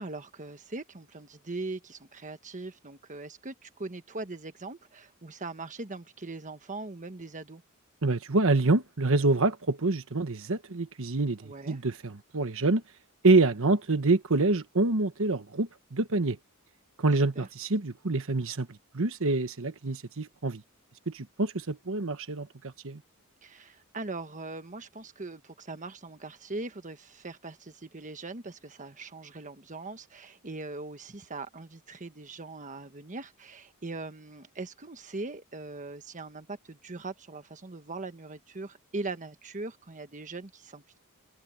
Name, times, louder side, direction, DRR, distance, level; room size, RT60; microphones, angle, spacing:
voice 1, 0.0-7.6 11.4-11.8 17.3-17.5 23.4-41.0, right 3 dB, 35° right, 1.4 m, -40 dB
voice 2, 8.0-12.8 13.2-16.4 17.0-20.6 21.1-23.0, right 3 dB, 65° right, 1.2 m, -26 dB
head